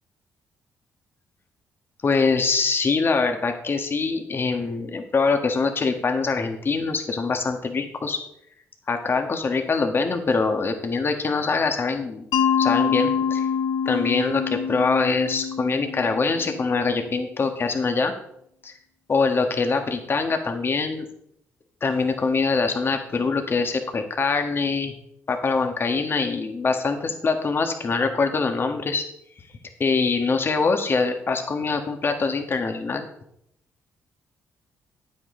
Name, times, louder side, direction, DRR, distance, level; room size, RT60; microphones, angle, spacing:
voice 1, 2.0-8.2 8.9-12.2 12.6-13.5 13.8-18.1 18.6-18.7 19.1-21.1 21.8-24.9 25.3-29.0 29.8-33.1, left 4 dB, 40° left, 5 dB, 1.5 m, -24 dB
Mallet percussion, 12.3-17.1, left 7 dB, 80° left, 0.8 m, -25 dB
9.1 x 7.9 x 3.8 m, 0.73 s
cardioid pair, 75°, 6 cm